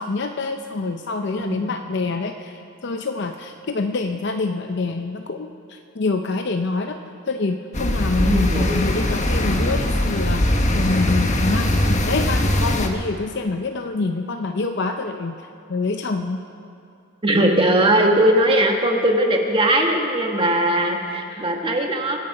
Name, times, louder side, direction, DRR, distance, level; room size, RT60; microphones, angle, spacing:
voice 1, 0.0-7.0 7.3-15.3 15.7-16.4 21.3-21.5, left 3 dB, 55° left, 6 dB, 0.6 m, -26 dB
sound 1, 7.7-12.9, left 1 dB, 35° left, 1.2 m, -21 dB
voice 2, 8.2-8.8 17.2-22.2, right 1 dB, 25° right, 2 dB, 1.4 m, -19 dB
25.0 x 9.5 x 5.4 m, 2.5 s
head